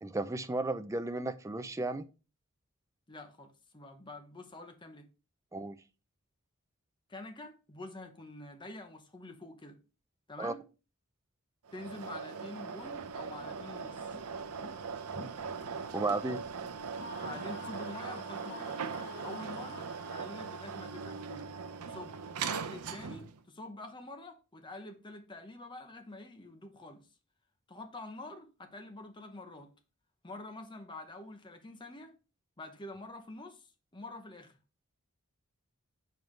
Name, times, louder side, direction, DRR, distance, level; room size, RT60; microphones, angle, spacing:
voice 1, 0.0-2.1 5.5-5.8 10.4-10.5 15.9-16.4, right 2 dB, 15° right, 0.3 m, -34 dB
voice 2, 3.1-5.1 7.1-9.8 10.3-10.6 11.7-14.2 17.2-18.8 19.2-21.5 21.8-27.1 27.7-29.7 30.2-32.1 32.6-34.6, left 2 dB, 20° left, 0.8 m, -47 dB
sound 1, 11.7-23.4, right 6 dB, 85° right, 0.6 m, -40 dB
sound 2, 12.8-18.3 18.9-19.0 19.4-19.5, left 1 dB, 30° right, 3.6 m, -54 dB
sound 3, 16.9-20.7, left 2 dB, 90° left, 1.7 m, -48 dB
7.3 x 4.6 x 3.1 m
head